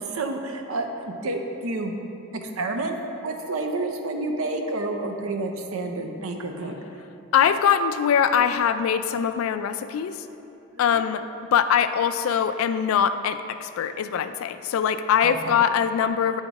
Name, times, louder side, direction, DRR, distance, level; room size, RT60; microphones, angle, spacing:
voice 1, 0.0-2.0 2.4-3.0 3.2-6.8 10.7-10.9 15.2-15.7, right 2 dB, 80° right, 4 dB, 0.6 m, -29 dB
voice 2, 7.3-10.2 10.8-11.2 11.5-16.4, left 8 dB, 80° left, 11 dB, 0.3 m, -22 dB
8.9 x 3.6 x 4.0 m, 2.8 s
head